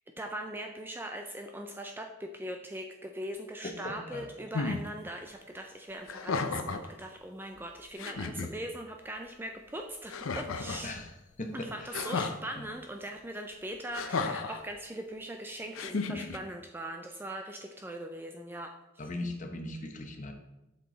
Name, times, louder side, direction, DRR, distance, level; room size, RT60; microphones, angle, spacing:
voice 1, 0.2-11.0 11.5-18.7, right 1 dB, 10° right, 4 dB, 0.4 m, -40 dB
voice 2, 3.6-4.3 10.8-11.1 11.4-12.0 12.6-12.7 19.0-20.3, left 1 dB, 35° left, 4 dB, 0.9 m, -39 dB
sound 1, 4.5-4.8 6.0-6.9 7.6-7.7 8.0-8.5 10.1-10.9 11.9-12.4 13.9-14.6 15.7-16.4, left 4 dB, 70° left, 0.6 m, -33 dB
7.6 x 6.0 x 3.9 m, 0.98 s
head